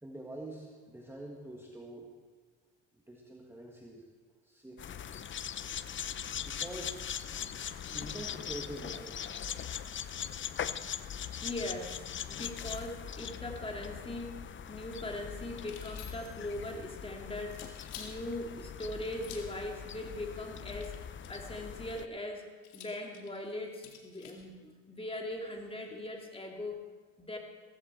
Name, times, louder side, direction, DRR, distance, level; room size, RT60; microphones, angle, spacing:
voice 1, 0.0-2.1 2.9-4.1 4.4-5.0 6.2-7.0 7.9-9.3 10.2-10.3 11.2-11.5, right 1 dB, 5° right, -1 dB, 1.9 m, -46 dB
sound 1, 4.8-22.1, left 8 dB, 30° left, 0.7 m, -41 dB
voice 2, 11.4-17.6 17.9-22.5 22.7-26.8 27.2-27.4, left 1 dB, 15° left, 1 dB, 2.9 m, -40 dB
sound 2, 15.6-16.5 17.5-18.2 19.1-19.6 20.7-21.5 22.6-24.5, left 8 dB, 75° left, 2.4 m, -50 dB
16.5 x 15.5 x 4.5 m, 1.4 s
supercardioid pair, 90°, 41 cm